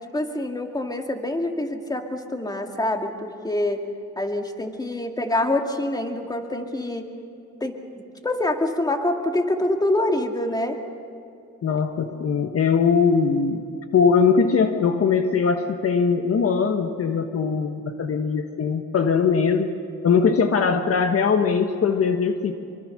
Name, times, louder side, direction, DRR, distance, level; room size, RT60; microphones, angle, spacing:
voice 1, 0.1-3.8 4.2-7.1 7.6-7.8 8.2-10.8, left 1 dB, 15° left, 4 dB, 2.3 m, -25 dB
voice 2, 11.6-13.7 13.9-19.7 20.0-22.6, left 5 dB, 50° left, 6 dB, 1.4 m, -21 dB
25.0 x 24.0 x 6.5 m, 2.6 s
cardioid pair, 90°, 30 cm